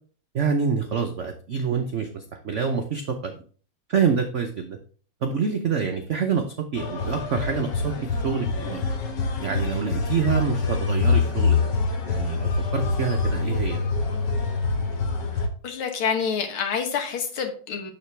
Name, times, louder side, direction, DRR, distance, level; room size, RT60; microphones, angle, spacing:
voice 1, 0.3-3.4 3.9-4.8 5.2-8.8 9.4-11.8 12.0-13.8, right 6 dB, 75° right, 4 dB, 0.6 m, -27 dB
sound 1, 6.8-15.5, left 4 dB, 60° left, 1.6 m, -25 dB
voice 2, 15.6-17.9, left 6 dB, 80° left, 5 dB, 2.1 m, -27 dB
7.0 x 6.5 x 3.3 m, 0.41 s
omnidirectional pair, 2.3 m